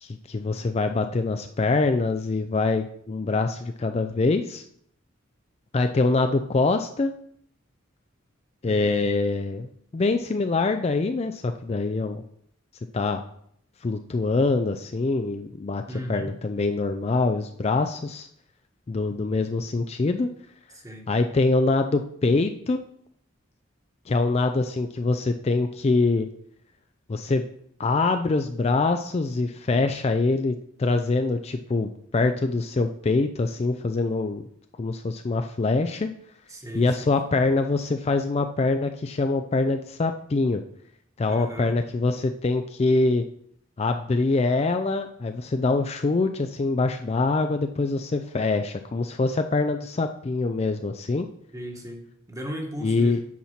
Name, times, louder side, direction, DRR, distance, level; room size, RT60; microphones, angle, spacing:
voice 1, 0.0-4.6 5.7-7.1 8.6-9.7 9.9-12.2 12.9-13.2 13.8-15.8 16.1-18.3 18.9-20.3 21.1-22.8 24.1-26.3 27.1-27.4 27.8-34.4 34.8-36.1 36.7-40.6 41.2-43.2 43.8-51.3 52.8-53.2, left 3 dB, 30° left, 7 dB, 0.4 m, -24 dB
voice 2, 15.9-16.3 20.7-21.1 36.5-37.1 41.3-41.7 51.5-52.0 52.3-53.2, equal, 15° right, 2 dB, 1.3 m, -36 dB
8.4 x 4.4 x 5.7 m, 0.67 s
head